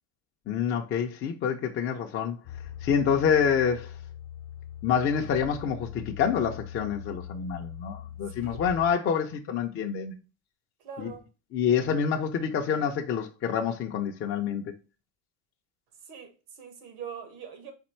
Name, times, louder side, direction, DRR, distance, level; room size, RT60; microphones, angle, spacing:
voice 1, 0.5-2.4 2.8-3.9 4.8-10.2 11.0-11.1 11.5-14.7, left 7 dB, 30° left, 0.4 m, -27 dB
sound 1, 2.4-8.9, left 9 dB, 65° left, 0.7 m, -41 dB
voice 2, 10.8-11.2 16.1-17.7, right 7 dB, 85° right, 1.5 m, -42 dB
4.3 x 2.6 x 4.3 m
cardioid pair, 140°, 49 cm